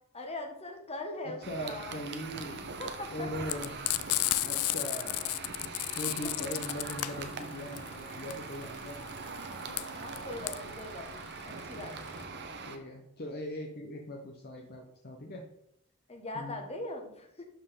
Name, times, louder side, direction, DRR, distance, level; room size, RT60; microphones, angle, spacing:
voice 1, 0.1-2.0 2.8-3.4 5.2-5.3 9.7-11.9 16.1-17.4, left 2 dB, 30° left, 2 dB, 1.5 m, -41 dB
voice 2, 1.2-2.7 3.1-3.7 4.4-5.3 5.9-9.1 12.7-15.4 16.3-16.6, equal, 45° left, 2 dB, 0.9 m, -40 dB
sound 1, 1.4-12.8, right 4 dB, 50° right, 1.0 m, -42 dB
Frying (food), 3.5-12.2, left 18 dB, 85° left, 0.4 m, -33 dB
11.5 x 4.7 x 3.7 m, 0.79 s
head